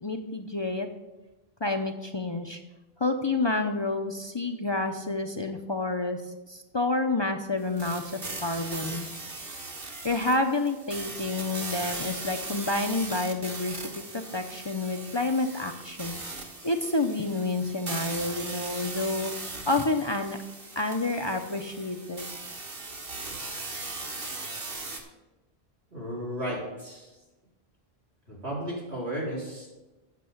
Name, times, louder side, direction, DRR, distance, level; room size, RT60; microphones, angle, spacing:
voice 1, 0.0-0.9 1.6-2.6 3.0-6.2 6.5-8.0 8.4-9.1 10.0-16.2 16.6-19.3 19.7-20.4 20.8-22.3, left 2 dB, 30° left, 4 dB, 0.6 m, -29 dB
sound 1, 7.8-25.0, right 3 dB, 60° right, 1.6 m, -38 dB
voice 2, 25.9-27.1 28.3-29.7, equal, 90° right, -5 dB, 4.1 m, -34 dB
8.4 x 6.5 x 7.7 m, 1.1 s
omnidirectional pair, 1.1 m